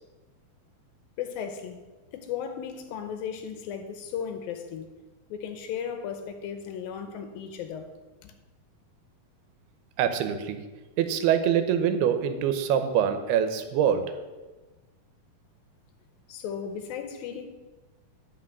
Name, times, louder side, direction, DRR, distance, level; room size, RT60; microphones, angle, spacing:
voice 1, 1.2-1.8 2.1-4.9 5.3-7.9 8.2-8.3 16.3-17.5, left 8 dB, 75° left, 7 dB, 2.4 m, -35 dB
voice 2, 10.0-10.6 11.0-14.0, right 9 dB, 90° right, 9 dB, 2.8 m, -24 dB
10.0 x 5.9 x 7.3 m, 1.2 s
omnidirectional pair, 4.5 m